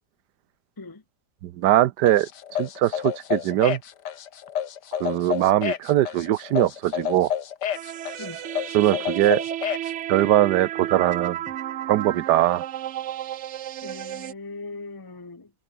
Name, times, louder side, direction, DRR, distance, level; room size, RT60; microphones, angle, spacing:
voice 1, 1.4-2.3 2.6-3.8 5.0-7.3 8.7-9.4 10.1-11.4 11.9-12.6, right 13 dB, 85° right, 1.3 m, -21 dB
sound 1, 2.1-9.9, left 9 dB, 90° left, 1.8 m, -29 dB
sound 2, 7.7-14.3, right 12 dB, 65° right, 0.7 m, -33 dB
voice 2, 13.8-15.6, left 3 dB, 20° left, 0.7 m, -39 dB
omnidirectional pair, 1.7 m